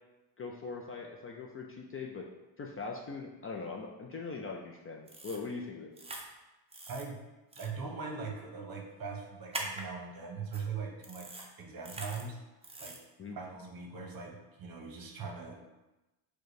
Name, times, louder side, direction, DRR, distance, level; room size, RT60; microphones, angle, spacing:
voice 1, 0.4-2.3 2.6-5.9 13.2-13.4, left 4 dB, 30° left, 0 dB, 0.4 m, -41 dB
sound 1, 5.1-5.4 6.0-6.2 6.7-7.0 7.5-7.7 9.5-9.8 10.5-10.6 11.0-11.5 11.8-12.2 12.6-13.0, right 2 dB, 10° right, 0.7 m, -42 dB
voice 2, 6.9-7.2 7.6-11.3 11.6-12.4 12.8-13.0 13.3-15.6, right 5 dB, 45° right, 1 dB, 1.0 m, -41 dB
4.7 x 2.3 x 4.7 m, 1.0 s
supercardioid pair, 85°, 50 cm